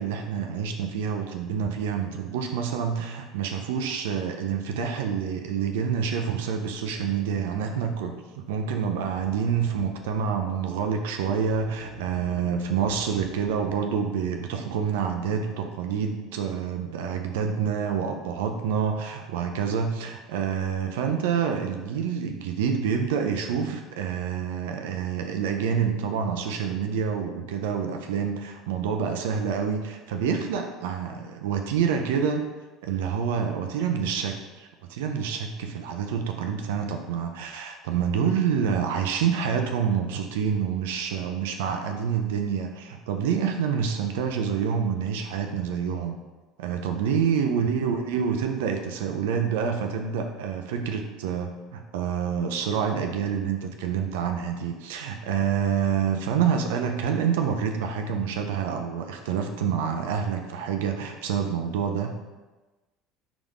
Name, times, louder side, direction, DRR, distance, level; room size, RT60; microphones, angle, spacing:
voice 1, 0.0-32.4 32.9-46.2 46.6-62.1, right 7 dB, 85° right, 4 dB, 0.5 m, -27 dB
sound 1, 6.6-8.1 8.5-8.6 8.8-10.4 11.0-14.1, left 2 dB, 90° left, 0.9 m, -49 dB
4.9 x 3.7 x 5.3 m, 1.2 s
supercardioid pair, 85°, 0 cm